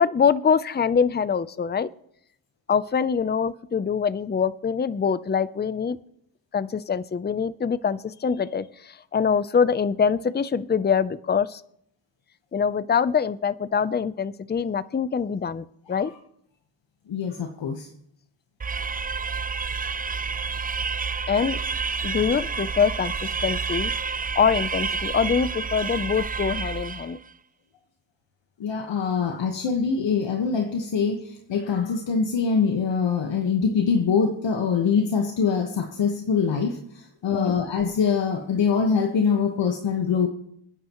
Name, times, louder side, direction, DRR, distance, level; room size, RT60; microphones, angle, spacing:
voice 1, 0.0-1.9 2.7-6.0 6.5-8.7 9.1-11.6 12.5-16.1 21.3-21.6 22.0-23.9 24.3-27.2 29.2-29.4 37.3-37.6, left 6 dB, 20° left, 16 dB, 0.6 m, -24 dB
voice 2, 17.1-17.9 28.6-31.2 31.5-36.8 37.2-40.3, left 6 dB, 70° left, 3 dB, 1.5 m, -23 dB
sound 1, 18.6-27.2, right 5 dB, 20° right, 0.5 m, -29 dB
27.5 x 10.0 x 3.1 m, 0.74 s
cardioid pair, 60°, 45 cm